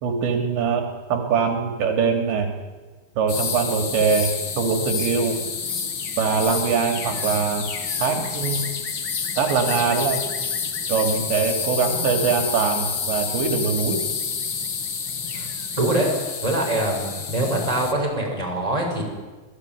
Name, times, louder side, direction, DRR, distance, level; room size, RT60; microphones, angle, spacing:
voice 1, 0.0-2.6 3.2-5.4 6.2-7.7 8.0-8.7 9.4-10.2 10.9-14.0, right 5 dB, 75° right, 4 dB, 4.7 m, -23 dB
sound 1, 3.3-17.9, left 6 dB, 60° left, 1.2 m, -28 dB
voice 2, 15.8-16.1 16.4-19.0, right 1 dB, 5° right, 0 dB, 6.9 m, -23 dB
27.5 x 19.0 x 9.7 m, 1.3 s
omnidirectional pair, 5.2 m